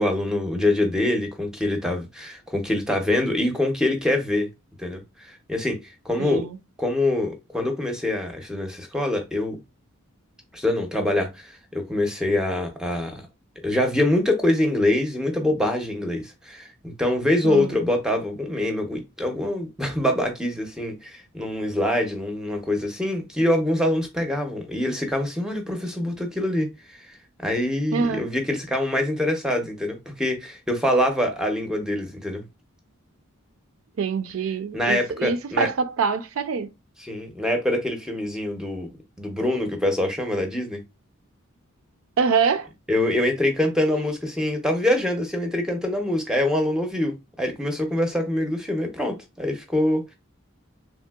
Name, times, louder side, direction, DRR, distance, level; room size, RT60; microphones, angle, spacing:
voice 1, 0.0-4.5 4.8-6.4 6.8-9.6 10.5-13.2 13.6-32.4 34.7-35.7 37.0-38.9 39.2-40.8 42.9-50.1, left 1 dB, 5° right, 0.5 m, -25 dB
voice 2, 6.2-6.6 17.4-17.8 27.9-28.3 34.0-36.7 42.2-42.7, right 5 dB, 70° right, 0.4 m, -25 dB
3.1 x 2.7 x 2.2 m
head